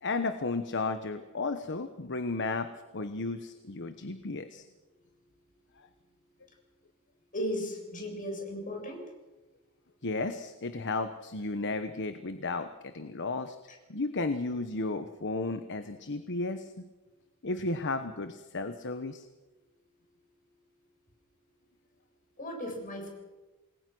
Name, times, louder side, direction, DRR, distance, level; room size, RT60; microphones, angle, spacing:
voice 1, 0.0-4.6 10.0-12.7 12.9-13.6 13.9-16.7 17.4-19.3, left 3 dB, 55° left, 9 dB, 1.1 m, -33 dB
voice 2, 7.3-9.0 13.7-13.8 22.4-23.1, equal, 35° left, 1 dB, 7.4 m, -36 dB
29.0 x 21.0 x 6.3 m, 1.2 s
head